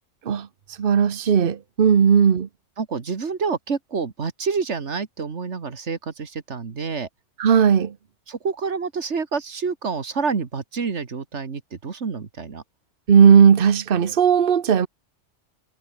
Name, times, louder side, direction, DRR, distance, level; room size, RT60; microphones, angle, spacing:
voice 1, 0.8-2.5 7.4-7.9 13.1-14.9, right 7 dB, 50° right, 1.2 m, -16 dB
voice 2, 2.8-7.1 8.3-12.6, right 5 dB, 70° right, 2.0 m, -28 dB
omnidirectional pair, 1.2 m